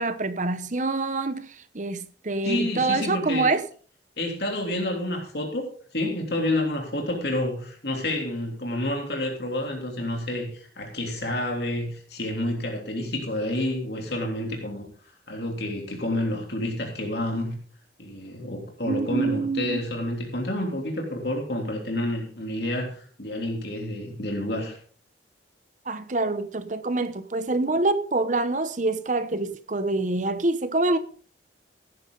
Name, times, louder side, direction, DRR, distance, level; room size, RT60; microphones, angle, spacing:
voice 1, 0.0-3.6 18.8-19.8 25.9-31.0, right 2 dB, 40° right, 0.9 m, -26 dB
voice 2, 2.4-3.5 4.2-14.9 15.3-17.6 18.0-24.8, left 1 dB, 60° left, 3.2 m, -29 dB
16.5 x 10.0 x 3.9 m
head